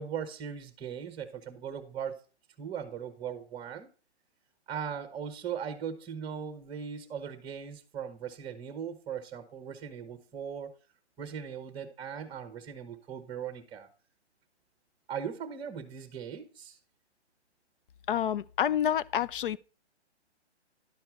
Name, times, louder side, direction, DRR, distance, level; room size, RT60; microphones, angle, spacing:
voice 1, 0.0-2.2 2.6-3.9 4.7-10.8 11.2-13.9 15.1-16.8, right 7 dB, 15° right, 1.1 m, -39 dB
voice 2, 18.1-19.6, left 10 dB, 50° left, 0.5 m, -28 dB
11.0 x 4.5 x 5.9 m
hypercardioid pair, 135°, 34 cm